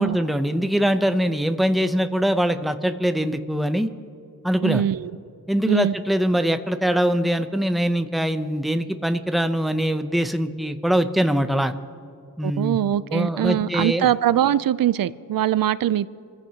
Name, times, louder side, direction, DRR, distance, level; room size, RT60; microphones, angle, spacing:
voice 1, 0.0-3.9 4.4-4.8 5.5-11.7 12.4-12.8 13.1-14.1, equal, ahead, 0.6 m, -22 dB
voice 2, 4.6-5.1 5.6-5.9 12.4-16.1, right 11 dB, 90° right, 0.5 m, -22 dB
28.5 x 15.0 x 2.9 m
wide cardioid pair, 145°, 33 cm